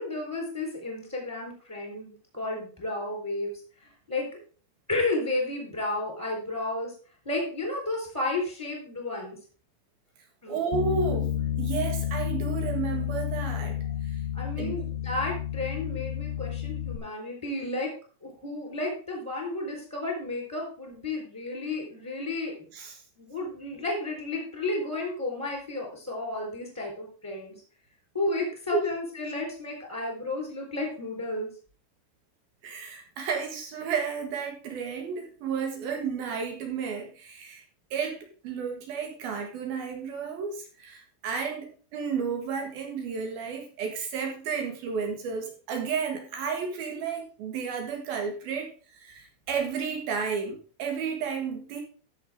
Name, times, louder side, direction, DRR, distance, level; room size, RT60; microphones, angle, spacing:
voice 1, 0.0-3.5 3.8-4.3 4.9-6.9 7.2-9.4 10.4-10.6 14.3-17.9 18.2-22.7 23.2-27.6 28.1-31.5, left 2 dB, 5° right, 0 dB, 2.7 m, -32 dB
voice 2, 10.5-11.3 11.6-13.8 14.1-14.2 14.6-14.8 22.7-23.0 28.7-28.8 32.6-37.6 37.9-51.8, right 6 dB, 60° right, 3 dB, 2.9 m, -32 dB
Bass guitar, 10.7-17.0, left 10 dB, 75° left, 2.9 m, -31 dB
12.5 x 7.1 x 3.7 m, 0.39 s
omnidirectional pair, 5.8 m